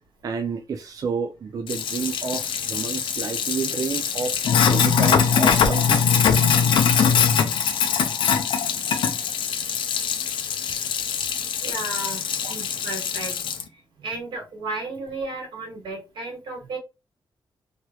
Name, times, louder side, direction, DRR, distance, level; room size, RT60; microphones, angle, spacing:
voice 1, 0.2-6.0 12.4-12.5, right 5 dB, 45° right, 0.4 m, -30 dB
Sink (filling or washing), 1.7-13.6, left 7 dB, 85° left, 0.5 m, -22 dB
voice 2, 11.6-12.2 12.5-13.4 13.7-16.8, right 2 dB, 90° right, 1.7 m, -33 dB
3.1 x 2.9 x 2.3 m
wide cardioid pair, 175°, 8 cm